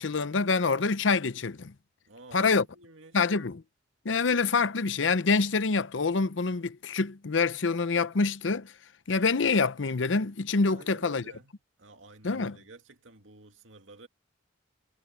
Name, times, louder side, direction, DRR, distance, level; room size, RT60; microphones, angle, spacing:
voice 1, 0.0-1.7 2.3-2.6 3.1-3.6 4.0-8.7 9.1-11.2 12.2-12.6, left 4 dB, 75° left, 0.7 m, -26 dB
voice 2, 2.1-3.3 10.7-11.5 11.8-14.1, right 2 dB, 90° right, 2.2 m, -51 dB
head